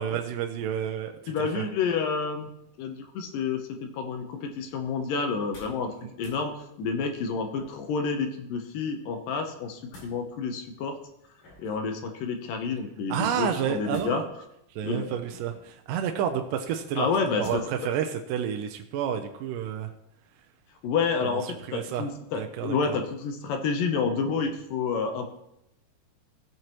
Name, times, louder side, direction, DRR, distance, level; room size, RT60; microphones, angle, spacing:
voice 1, 0.0-1.6 13.1-14.2 14.8-19.9 21.2-21.4 21.7-22.1 22.4-23.0, right 9 dB, 80° right, 5 dB, 2.0 m, -30 dB
voice 2, 1.3-2.5 2.8-6.5 6.8-11.0 11.6-14.2 14.8-15.2 17.0-17.6 20.8-21.4 21.7-25.3, left 5 dB, 70° left, 5 dB, 2.4 m, -29 dB
sound 1, 5.3-5.9 6.1-6.4 7.5-8.0 9.5-10.2 11.4-11.9 13.9-14.5 15.3-15.8 17.4-17.9 18.3-18.4, left 1 dB, 90° left, 6.3 m, -48 dB
16.0 x 7.7 x 3.0 m, 0.81 s
omnidirectional pair, 4.4 m